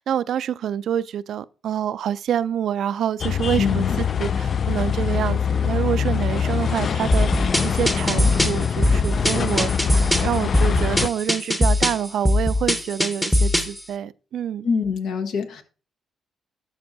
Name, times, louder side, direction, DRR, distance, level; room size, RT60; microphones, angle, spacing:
voice 1, 0.0-9.7 10.2-14.7, right 9 dB, 65° right, 0.3 m, -27 dB
sound 1, 3.2-11.1, left 7 dB, 45° left, 0.3 m, -24 dB
voice 2, 3.6-4.0 14.6-15.6, left 6 dB, 75° left, 1.1 m, -24 dB
sound 2, 7.1-13.8, left 1 dB, 10° left, 0.9 m, -21 dB
12.0 x 5.3 x 2.6 m
cardioid pair, 90°, 0 cm